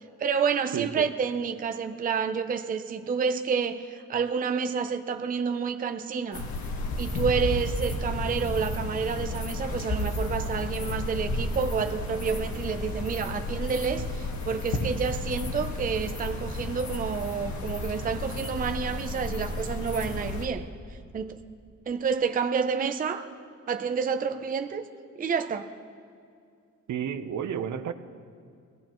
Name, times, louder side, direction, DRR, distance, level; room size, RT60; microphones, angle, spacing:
voice 1, 0.2-6.5 7.0-20.7 21.1-21.4 21.9-23.3 23.7-24.8 25.2-25.7, right 6 dB, 30° right, 8 dB, 0.5 m, -29 dB
voice 2, 0.7-1.0 26.9-27.9, right 8 dB, 75° right, 10 dB, 0.8 m, -31 dB
sound 1, 6.3-20.5, left 2 dB, 70° left, 1.5 m, -32 dB
23.5 x 16.0 x 3.0 m, 2.3 s
wide cardioid pair, 165°, 30 cm